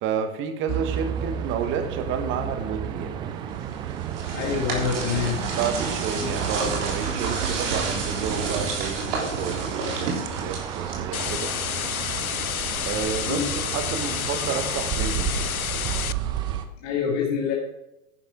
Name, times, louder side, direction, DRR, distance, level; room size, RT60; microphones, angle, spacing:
voice 1, 0.0-3.1 5.6-11.5 12.8-15.5, right 7 dB, 30° right, 8 dB, 1.3 m, -30 dB
sound 1, 0.7-16.7, right 8 dB, 10° right, 0.3 m, -32 dB
sound 2, 3.7-11.5, right 4 dB, 60° right, 3.6 m, -30 dB
voice 2, 4.3-5.4 6.2-6.3 13.3-13.5 16.8-17.5, left 7 dB, 40° left, -2 dB, 2.1 m, -26 dB
sound 3, 11.1-16.1, left 8 dB, 90° left, 0.5 m, -29 dB
11.0 x 10.5 x 3.7 m, 0.88 s
figure-of-eight pair, 100°, 41 cm